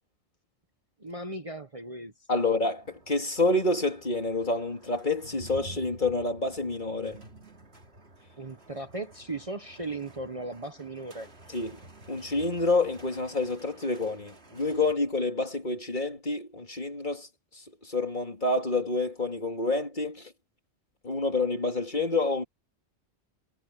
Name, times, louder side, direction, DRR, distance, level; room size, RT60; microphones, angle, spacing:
voice 1, 1.0-2.4 8.4-11.3, right 2 dB, 30° right, 1.3 m, -37 dB
voice 2, 2.3-7.2 11.5-11.8 12.1-17.3 17.5-20.3 21.0-22.4, left 2 dB, 40° left, 2.9 m, -28 dB
sound 1, 2.6-14.9, right 1 dB, 60° right, 3.4 m, -51 dB
omnidirectional pair, 1.3 m